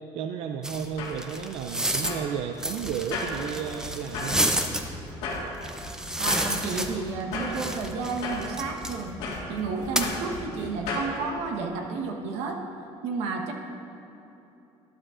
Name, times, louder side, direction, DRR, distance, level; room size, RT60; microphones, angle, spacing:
voice 1, 0.1-4.5, right 8 dB, 65° right, 6 dB, 0.4 m, -33 dB
sound 1, 0.6-2.2 2.6-4.8 5.6-7.2 7.5-9.0 10.0-10.1, right 1 dB, 5° right, 0.5 m, -30 dB
sound 2, 0.7-11.1, left 2 dB, 80° left, 1.9 m, -37 dB
sound 3, 2.8-10.8, left 2 dB, 30° left, 1.1 m, -43 dB
voice 2, 6.2-9.2 9.5-12.6 13.0-13.5, right 4 dB, 85° right, 2 dB, 1.1 m, -31 dB
12.0 x 11.0 x 2.5 m, 3.0 s
cardioid pair, 160°, 11 cm